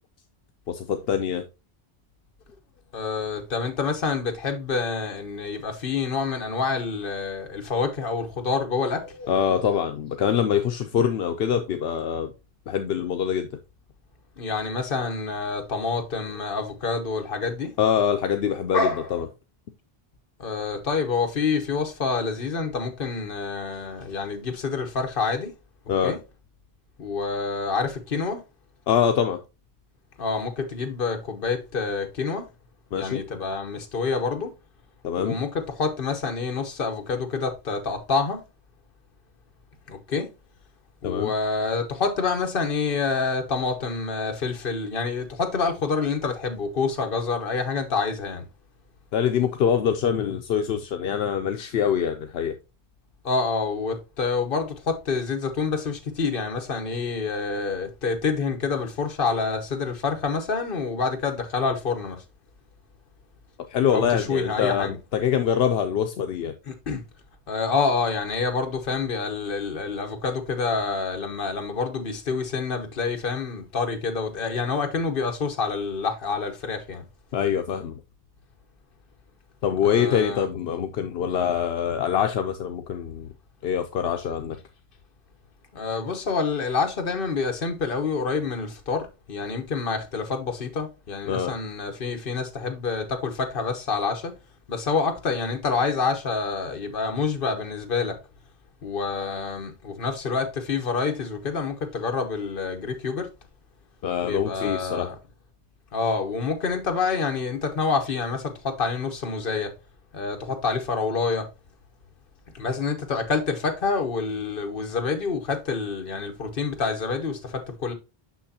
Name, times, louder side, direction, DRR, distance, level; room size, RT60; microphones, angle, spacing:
voice 1, 0.7-1.4 9.3-12.3 12.7-13.5 17.8-19.3 25.9-26.1 28.9-29.4 32.9-33.2 35.0-35.4 41.0-41.3 49.1-52.5 63.7-66.5 77.3-78.0 79.6-83.3 83.6-84.6 91.3-91.5 104.0-105.1, left 8 dB, 80° left, 0.8 m, -24 dB
voice 2, 2.9-9.5 14.4-17.7 18.7-19.1 20.4-25.5 26.0-26.2 27.0-28.4 30.2-32.5 32.9-34.5 35.2-38.4 39.9-40.3 41.0-48.5 53.2-62.2 63.9-65.0 66.6-67.0 67.5-77.1 79.8-80.5 85.7-94.3 94.7-98.2 98.8-103.3 104.2-105.1 105.9-109.7 110.1-111.5 112.5-117.9, left 4 dB, 60° left, 1.2 m, -27 dB
6.2 x 6.1 x 2.7 m
omnidirectional pair, 1.0 m